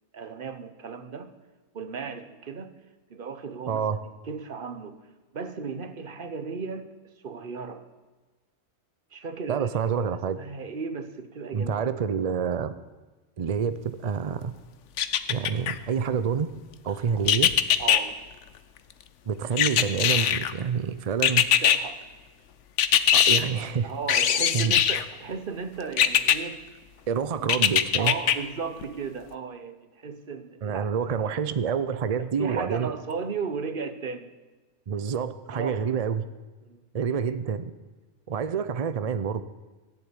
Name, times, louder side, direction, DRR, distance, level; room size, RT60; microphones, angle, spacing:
voice 1, 0.1-1.3 1.7-2.7 3.1-3.8 4.2-5.0 5.3-7.8 9.1-10.1 10.4-11.9 17.1-17.3 17.8-18.2 21.6-22.0 23.8-26.6 28.0-30.9 32.2-34.3 35.5-35.9 36.6-36.8, right 5 dB, 40° right, 10 dB, 1.0 m, -35 dB
voice 2, 3.7-4.0 9.5-10.4 11.5-12.7 13.4-14.5 15.3-16.5 16.8-17.5 19.3-21.5 23.1-23.9 24.5-24.7 27.1-28.1 30.6-32.9 34.9-36.2 36.9-37.7 38.3-39.4, right 6 dB, 75° right, 12 dB, 0.3 m, -27 dB
sound 1, 15.0-15.7 17.3-18.0 19.6-20.5 21.2-21.8 22.8-23.4 24.1-25.0 26.0-26.4 27.5-28.3 28.8-28.9, left 9 dB, 60° left, 1.0 m, -21 dB
16.0 x 7.3 x 9.7 m, 1.3 s
omnidirectional pair, 1.5 m